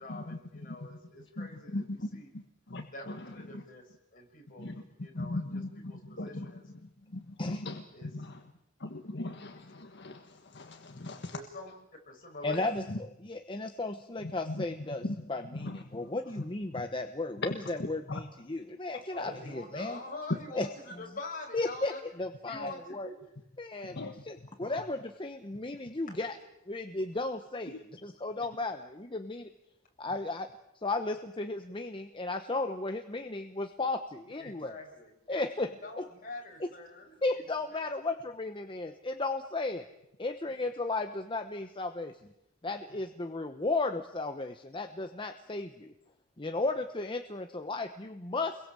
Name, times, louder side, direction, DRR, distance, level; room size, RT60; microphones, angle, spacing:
voice 1, 0.0-2.3 2.9-6.7 7.9-8.2 11.3-11.7 12.1-12.9 16.3-16.4 19.1-22.0 22.5-23.2 26.1-26.2 34.4-35.4 35.8-37.4 37.7-37.9, left 2 dB, 45° left, 1 dB, 6.6 m, -45 dB
voice 2, 5.1-5.7 6.2-6.4 7.4-7.8 8.1-8.3 8.8-10.2 10.5-11.3 14.5-14.6 15.0-15.2 15.6-15.8 23.9-24.1, left 2 dB, 60° left, 5 dB, 1.5 m, -37 dB
voice 3, 12.4-20.0 20.5-20.7 21.5-21.9 22.2-23.1 23.6-24.0 24.2-26.4 26.7-29.5 30.0-30.5 30.8-34.7 35.3-35.7 36.0-36.1 37.2-39.9 40.2-42.1 42.6-45.9 46.4-48.6, left 2 dB, 25° left, 7 dB, 1.0 m, -34 dB
29.0 x 22.5 x 7.6 m, 0.87 s
head